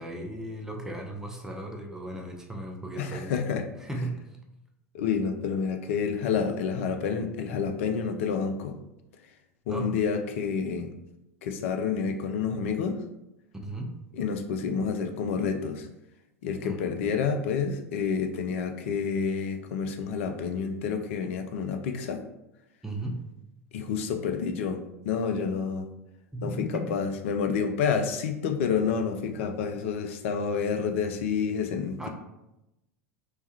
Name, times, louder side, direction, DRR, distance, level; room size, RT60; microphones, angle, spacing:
voice 1, 0.0-3.3 3.8-4.1 9.7-9.9 13.5-13.9 16.6-17.0 22.8-23.2 26.3-26.8 32.0-32.1, right 1 dB, 5° right, 2 dB, 0.5 m, -36 dB
voice 2, 3.0-3.6 4.9-8.8 9.7-10.9 11.4-13.0 14.1-15.9 16.4-22.2 23.7-25.9 26.4-32.1, left 6 dB, 55° left, 6 dB, 0.4 m, -29 dB
3.1 x 2.2 x 2.8 m, 0.91 s
figure-of-eight pair, 80°, 8 cm